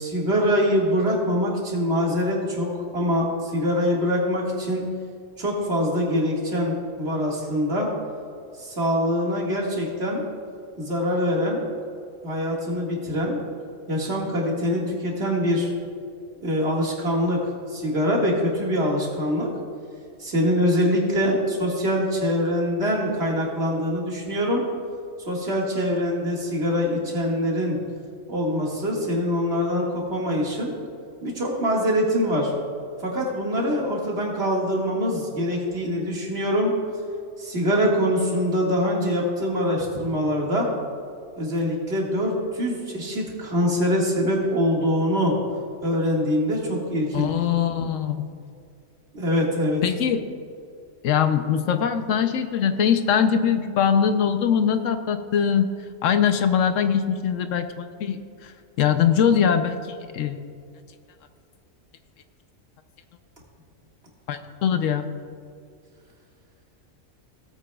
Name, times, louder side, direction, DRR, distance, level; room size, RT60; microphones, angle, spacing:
voice 1, 0.0-2.7 2.9-4.8 5.4-7.9 8.6-10.2 10.8-11.6 12.2-13.4 13.9-15.7 16.4-19.5 20.2-24.6 25.3-27.8 28.3-30.7 31.2-32.5 33.0-36.7 37.4-40.7 41.4-45.4 45.8-47.3 49.1-49.8, equal, 50° right, -2 dB, 2.1 m, -24 dB
voice 2, 47.1-48.3 49.8-50.2 51.0-55.7 56.0-58.5 58.8-60.4 64.3-65.1, left 8 dB, 75° left, 9 dB, 1.0 m, -22 dB
18.0 x 8.7 x 2.3 m, 2.3 s
omnidirectional pair, 1.3 m